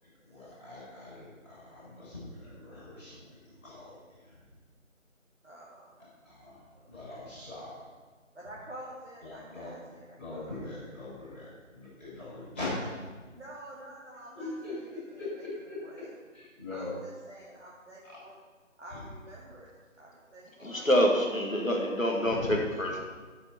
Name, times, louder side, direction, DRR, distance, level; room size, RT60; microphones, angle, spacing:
voice 1, 0.2-3.9 4.2-4.4 6.2-7.7 9.2-12.9 14.3-15.8 16.3-16.9 18.0-18.2 18.9-19.0 22.2-22.5, left 2 dB, 10° left, -18 dB, 2.8 m, -41 dB
voice 2, 5.4-6.0 6.7-7.2 8.3-10.8 13.3-15.3 15.8-16.1 16.7-18.4 18.8-21.1, right 1 dB, 60° right, -6 dB, 2.4 m, -49 dB
voice 3, 20.6-23.0, equal, 80° left, 0 dB, 2.1 m, -26 dB
12.5 x 8.0 x 4.6 m, 1.3 s
figure-of-eight pair, 165°, 39 cm